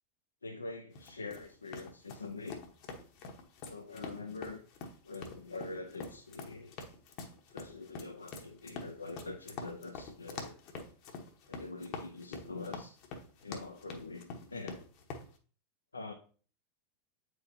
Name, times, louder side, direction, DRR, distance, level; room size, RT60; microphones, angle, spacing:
voice 1, 0.4-2.6 3.7-4.6 5.0-6.7 7.5-10.6 11.5-13.0 13.4-14.8 15.9-16.1, left 3 dB, 80° left, 0.6 m, -44 dB
sound 1, 1.0-15.3, left 4 dB, 45° left, 1.0 m, -46 dB
8.4 x 4.5 x 2.7 m
figure-of-eight pair, 85°, 0 cm